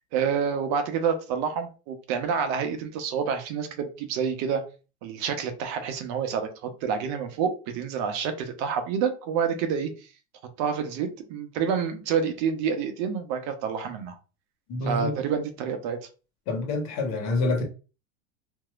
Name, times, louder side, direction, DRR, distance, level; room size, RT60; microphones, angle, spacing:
voice 1, 0.1-4.6 5.0-9.9 10.6-14.1 14.9-16.0, right 6 dB, 55° right, 0.8 m, -28 dB
voice 2, 14.7-15.1 16.5-17.6, left 2 dB, 55° left, 1.3 m, -27 dB
3.0 x 2.7 x 2.4 m
supercardioid pair, 110°, 33 cm